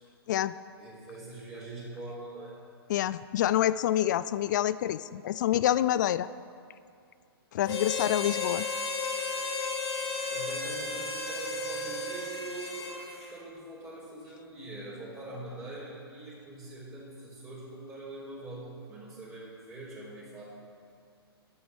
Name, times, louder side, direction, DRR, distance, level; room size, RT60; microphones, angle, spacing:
voice 1, 0.8-2.6 8.1-8.3 10.3-20.4, right 2 dB, 20° right, -8 dB, 4.2 m, -43 dB
voice 2, 2.9-6.3 7.5-8.7, left 12 dB, 45° left, 16 dB, 0.4 m, -27 dB
Harmonica, 7.6-13.3, left 3 dB, 85° left, 1.9 m, -34 dB
12.0 x 11.0 x 6.4 m, 2.3 s
hypercardioid pair, 125°, 13 cm